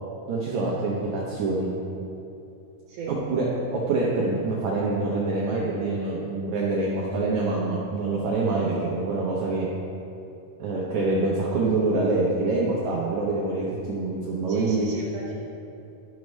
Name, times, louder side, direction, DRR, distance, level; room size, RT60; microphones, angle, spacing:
voice 1, 0.3-1.7 3.1-9.7 10.6-14.9, right 3 dB, 85° right, -5 dB, 1.6 m, -25 dB
voice 2, 14.5-15.3, right 4 dB, 70° right, -3 dB, 2.1 m, -36 dB
12.0 x 6.3 x 3.1 m, 2.7 s
omnidirectional pair, 4.5 m